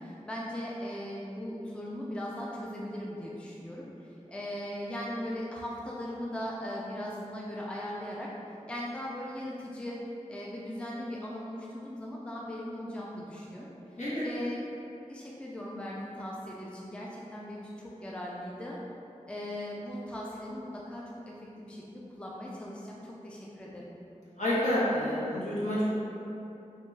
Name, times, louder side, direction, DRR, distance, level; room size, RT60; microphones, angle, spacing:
voice 1, 0.0-3.8 4.3-8.3 8.7-10.0 10.3-13.7 14.2-14.6 15.1-18.8 19.3-23.9, left 1 dB, 10° left, -4 dB, 0.3 m, -39 dB
voice 2, 24.4-25.9, left 1 dB, 70° left, -11 dB, 1.0 m, -28 dB
2.9 x 2.2 x 3.2 m, 2.9 s
wide cardioid pair, 45°, 13 cm